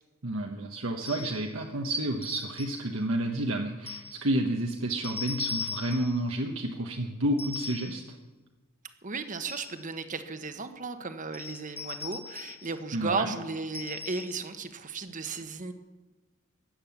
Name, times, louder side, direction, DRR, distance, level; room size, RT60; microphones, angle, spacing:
voice 1, 0.2-8.2 12.9-13.3, right 1 dB, 70° right, 2 dB, 1.1 m, -30 dB
sound 1, 1.1-1.5 2.2-2.9 3.9-4.2 5.0-6.2 7.4-8.0 9.2-9.8 11.3-12.7 13.7-14.5, left 5 dB, 30° left, 1.8 m, -39 dB
voice 2, 9.0-15.7, right 4 dB, 40° right, 8 dB, 1.2 m, -35 dB
16.5 x 9.9 x 7.2 m, 1.2 s
head